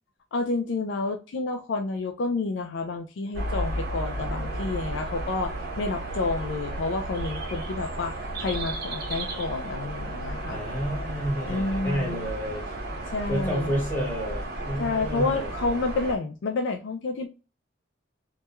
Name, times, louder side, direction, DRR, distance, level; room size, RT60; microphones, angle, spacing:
voice 1, 0.3-10.6 11.5-12.3 13.1-13.7 14.8-17.3, left 3 dB, 70° left, 5 dB, 0.3 m, -29 dB
sound 1, 3.3-16.1, right 1 dB, 55° right, 0.8 m, -33 dB
voice 2, 10.5-12.6 13.3-15.5, equal, 10° left, -4 dB, 1.1 m, -30 dB
2.2 x 2.2 x 2.8 m, 0.32 s
head